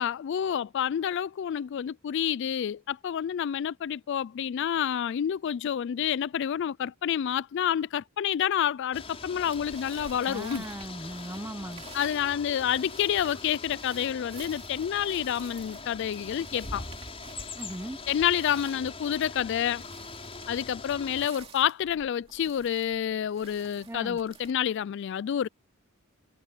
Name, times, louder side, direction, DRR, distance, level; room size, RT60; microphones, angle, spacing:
voice 1, 0.0-10.6 11.9-16.8 18.1-19.8 20.5-25.5, left 9 dB, 55° left, 0.3 m, -28 dB
sound 1, 8.9-21.3, left 3 dB, 25° left, 5.9 m, -42 dB
sound 2, 9.4-24.5, right 4 dB, 25° right, 2.7 m, -51 dB
voice 2, 10.2-11.8 17.6-18.0 23.9-24.2, right 1 dB, 10° right, 0.8 m, -38 dB
head